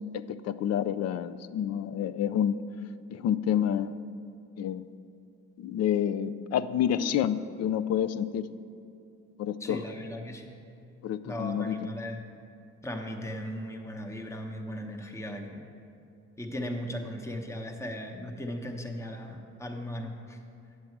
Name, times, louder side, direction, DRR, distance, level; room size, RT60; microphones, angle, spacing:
voice 1, 0.1-2.6 3.1-3.9 4.6-4.9 5.6-8.5 9.4-9.8 11.0-11.8, left 9 dB, 55° left, 14 dB, 0.4 m, -28 dB
voice 2, 9.6-10.5 11.2-12.2 12.8-15.6 16.4-20.4, equal, 10° left, 3 dB, 0.9 m, -37 dB
9.6 x 7.5 x 4.6 m, 2.6 s
cardioid pair, 90°, 30 cm